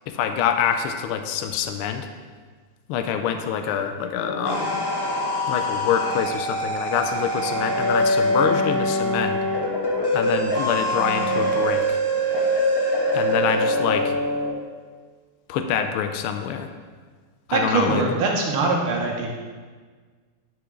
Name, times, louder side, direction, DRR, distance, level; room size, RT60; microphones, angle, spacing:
voice 1, 0.1-2.1 2.9-4.8 5.5-9.4 10.1-12.0 13.1-14.1 15.5-16.7 17.5-18.0, left 8 dB, 85° left, 7 dB, 1.5 m, -25 dB
sound 1, 4.1-14.5, equal, 30° left, 0.4 m, -24 dB
voice 2, 17.5-19.3, right 3 dB, 80° right, 0 dB, 1.9 m, -22 dB
9.6 x 5.1 x 3.7 m, 1.5 s
omnidirectional pair, 2.3 m